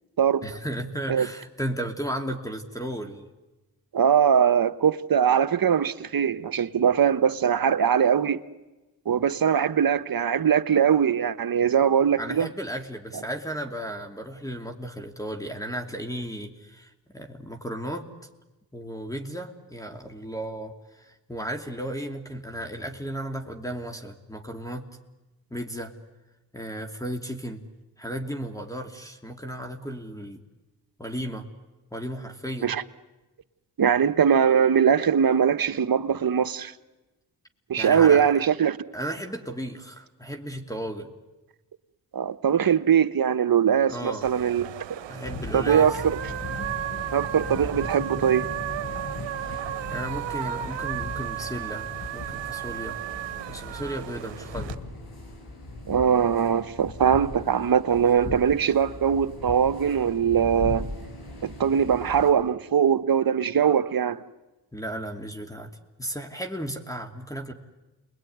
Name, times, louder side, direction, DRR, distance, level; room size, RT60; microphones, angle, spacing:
voice 1, 0.4-3.3 12.2-18.1 18.7-24.9 25.5-25.9 26.5-27.6 28.0-30.4 31.0-31.4 31.9-32.7 37.8-38.3 38.9-41.1 43.9-44.3 45.1-46.0 49.5-53.0 53.5-54.8 64.7-65.7 66.0-67.5, right 1 dB, 10° left, 2.8 m, -34 dB
voice 2, 3.9-8.4 9.1-12.5 32.6-32.8 33.8-36.7 37.7-38.8 42.1-44.7 45.5-46.2 47.1-48.4 55.9-60.9 61.4-64.2, right 8 dB, 55° right, 1.3 m, -21 dB
sound 1, 44.2-54.7, right 12 dB, 85° right, 1.0 m, -34 dB
sound 2, 45.2-62.3, left 2 dB, 60° left, 7.0 m, -38 dB
28.5 x 21.5 x 9.5 m
supercardioid pair, 50°, 43 cm